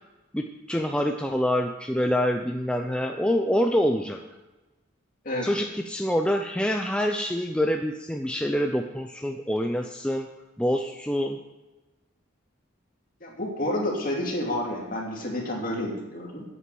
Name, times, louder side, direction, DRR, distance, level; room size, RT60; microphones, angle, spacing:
voice 1, 0.3-4.2 5.4-10.3 10.6-11.4, equal, 5° left, 3 dB, 0.5 m, -26 dB
voice 2, 13.2-16.4, left 1 dB, 40° left, -1 dB, 2.8 m, -29 dB
9.9 x 8.5 x 7.6 m, 1.1 s
head